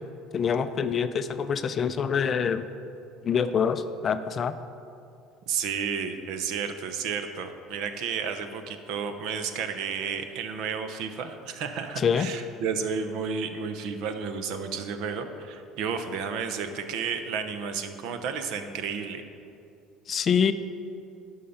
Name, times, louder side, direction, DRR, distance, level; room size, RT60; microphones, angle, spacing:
voice 1, 0.3-2.7 3.2-4.6 12.0-12.3 20.1-20.5, left 7 dB, 30° left, 11 dB, 0.4 m, -25 dB
voice 2, 5.5-19.2, right 6 dB, 65° right, 8 dB, 0.8 m, -32 dB
12.0 x 5.6 x 5.5 m, 2.6 s
cardioid pair, 145°, 0 cm